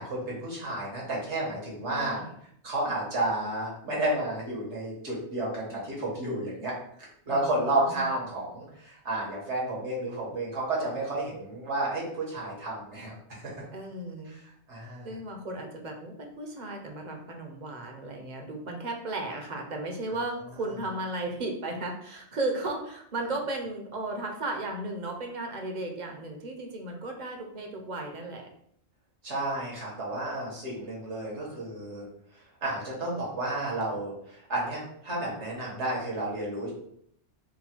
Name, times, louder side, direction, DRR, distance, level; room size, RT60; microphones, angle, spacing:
voice 1, 0.0-2.2 2.6-6.8 7.3-13.5 14.3-14.4 14.7-15.1 29.2-32.0 32.6-36.7, right 2 dB, 85° right, -4 dB, 1.6 m, -31 dB
voice 2, 1.9-2.3 7.3-8.1 13.7-14.4 15.0-28.5, right 2 dB, 45° right, 2 dB, 0.7 m, -35 dB
3.8 x 2.2 x 4.4 m, 0.70 s
omnidirectional pair, 1.1 m